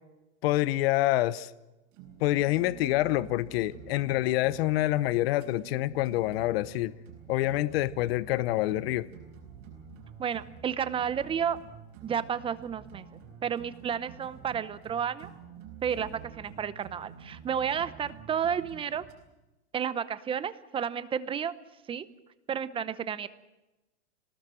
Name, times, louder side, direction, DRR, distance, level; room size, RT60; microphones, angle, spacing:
voice 1, 0.4-1.5 2.2-6.9 7.3-9.1, left 16 dB, 60° left, 17 dB, 0.9 m, -27 dB
sound 1, 1.9-19.1, right 7 dB, 40° right, 8.0 m, -49 dB
voice 2, 10.2-11.6 12.0-13.0 13.4-15.3 15.8-19.0 19.7-21.5 21.9-22.1 22.5-23.3, right 8 dB, 15° right, 14 dB, 0.8 m, -31 dB
26.5 x 19.5 x 7.7 m, 1.0 s
supercardioid pair, 150°, 34 cm